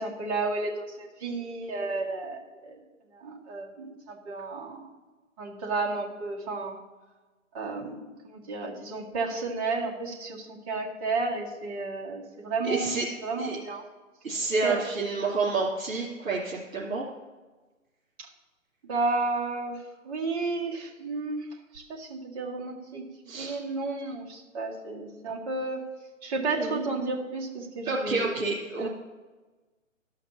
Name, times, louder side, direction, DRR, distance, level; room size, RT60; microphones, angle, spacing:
voice 1, 0.0-2.8 3.1-4.9 5.4-6.8 7.5-13.8 14.6-14.9 18.2-18.3 18.8-25.9 26.2-28.4 28.8-28.9, right 3 dB, 25° right, -2 dB, 1.9 m, -32 dB
voice 2, 12.7-13.1 13.4-13.6 14.2-17.1 23.3-23.6 26.6-26.8 27.9-28.9, right 3 dB, 75° right, -5 dB, 3.1 m, -29 dB
12.5 x 5.9 x 7.1 m, 1.2 s
hypercardioid pair, 150°, 41 cm